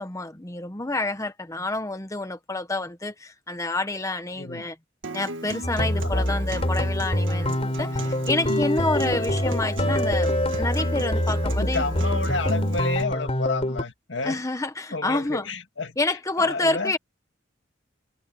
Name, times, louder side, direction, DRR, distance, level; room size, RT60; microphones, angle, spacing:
voice 1, 0.0-4.8 5.1-11.8 14.2-15.5 16.0-17.0, left 2 dB, 15° left, 0.9 m, -28 dB
voice 2, 4.4-4.7 6.0-6.3 11.1-11.3 11.6-14.4 14.9-16.0 16.4-16.9, left 3 dB, 70° left, 2.1 m, -30 dB
Acoustic guitar, 5.0-13.0, right 2 dB, 85° right, 1.9 m, -36 dB
sound 1, 5.6-13.8, left 1 dB, 35° left, 4.1 m, -25 dB
head